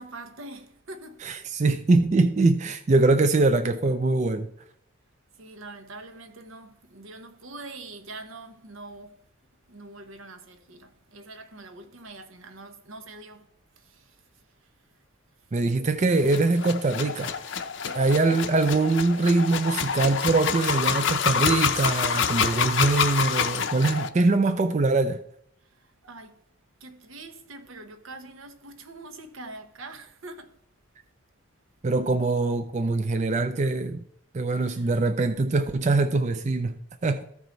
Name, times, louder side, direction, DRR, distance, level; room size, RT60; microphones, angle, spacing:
voice 1, 0.0-1.3 5.3-9.2 9.7-13.5 13.8-14.7 15.4-15.5 17.8-18.1 18.7-18.8 25.6-26.4 26.8-30.6 34.5-35.0, right 2 dB, 75° right, 1.0 m, -44 dB
voice 2, 1.2-4.5 15.5-17.3 18.0-25.2 31.8-34.0 34.3-37.2, right 3 dB, 35° right, 0.4 m, -23 dB
sound 1, 16.2-24.1, left 6 dB, 65° left, 0.7 m, -27 dB
14.0 x 4.8 x 3.9 m
head